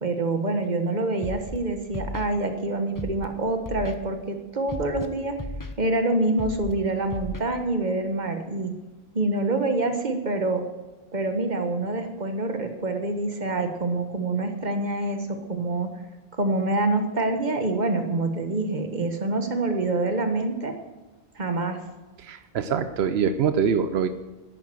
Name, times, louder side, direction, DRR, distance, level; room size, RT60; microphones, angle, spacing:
voice 1, 0.0-5.3 5.8-8.7 9.1-10.6 11.1-15.9 16.4-20.7 21.3-21.8, right 2 dB, 45° right, 6 dB, 1.6 m, -26 dB
Scratching (performance technique), 1.2-1.6 1.9-2.3 2.9-3.3 3.6-3.9 4.7-5.1 5.4-5.7 6.4-6.7 7.1-7.4, left 2 dB, 20° left, 0.9 m, -34 dB
voice 2, 22.2-24.1, right 7 dB, 85° right, 10 dB, 1.0 m, -24 dB
11.0 x 8.8 x 7.7 m, 1.2 s
omnidirectional pair, 1.0 m